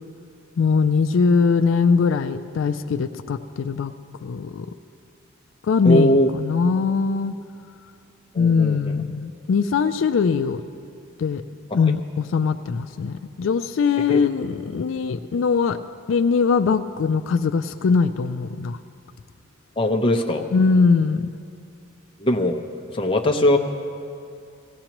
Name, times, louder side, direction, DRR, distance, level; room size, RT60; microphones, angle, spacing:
voice 1, 0.6-3.9 4.2-4.7 5.7-7.3 8.4-10.6 11.2-11.4 11.7-15.8 16.1-18.8 20.5-21.3, left 5 dB, 70° left, 8 dB, 0.3 m, -21 dB
voice 2, 5.9-6.3 8.4-8.8 14.1-14.2 19.8-20.4 22.2-22.6 22.9-23.6, left 1 dB, 25° left, 2 dB, 0.6 m, -20 dB
18.0 x 16.0 x 3.0 m, 2.5 s
head